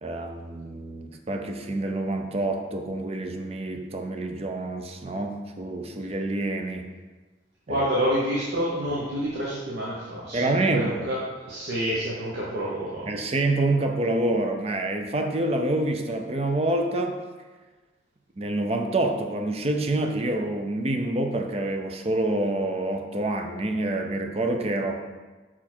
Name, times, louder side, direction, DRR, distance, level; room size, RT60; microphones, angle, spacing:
voice 1, 0.0-6.9 7.7-7.9 10.3-11.1 13.1-17.2 18.4-25.0, right 2 dB, 30° right, 5 dB, 0.5 m, -27 dB
voice 2, 7.7-13.0, equal, 65° right, -6 dB, 1.0 m, -28 dB
5.9 x 4.4 x 4.4 m, 1.3 s
head